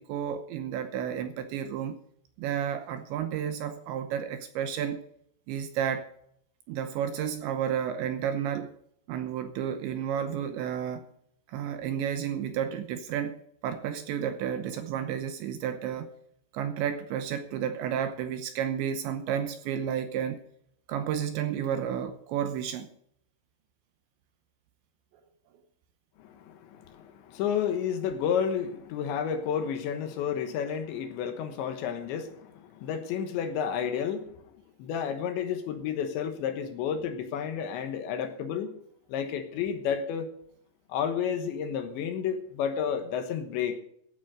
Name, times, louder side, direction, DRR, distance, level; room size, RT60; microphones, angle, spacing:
voice 1, 0.0-2.0 2.4-5.0 5.5-6.1 6.7-8.7 9.1-11.1 11.5-16.1 16.5-20.4 20.9-22.9, right 9 dB, 75° right, 2.9 m, -31 dB
voice 2, 26.2-34.4 34.8-38.7 39.1-40.3 40.9-43.8, left 8 dB, 70° left, 3.2 m, -31 dB
16.0 x 9.1 x 5.1 m
omnidirectional pair, 5.9 m